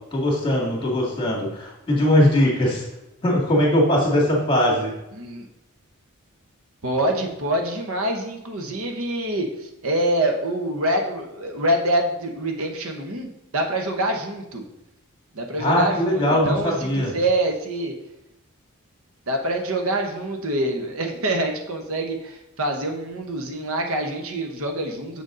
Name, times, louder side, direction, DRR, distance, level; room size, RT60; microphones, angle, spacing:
voice 1, 0.1-2.8 3.2-4.9 15.6-17.1, left 1 dB, 20° left, -2 dB, 2.1 m, -20 dB
voice 2, 5.1-5.5 6.8-14.6 15.3-17.9 19.3-25.2, right 1 dB, 70° right, 3 dB, 1.0 m, -25 dB
6.9 x 6.6 x 3.8 m, 0.91 s
head